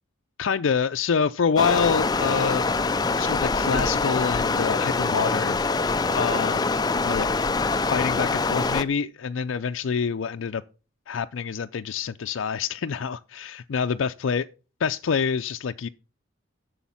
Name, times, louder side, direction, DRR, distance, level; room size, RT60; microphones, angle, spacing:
voice 1, 0.4-2.6 3.2-5.6 6.1-6.7 7.0-7.3 7.7-10.6 11.1-14.5 14.8-15.9, left 6 dB, 80° left, 0.4 m, -26 dB
Stream, 1.6-8.8, left 3 dB, 20° left, 0.4 m, -24 dB
11.5 x 7.1 x 5.6 m
head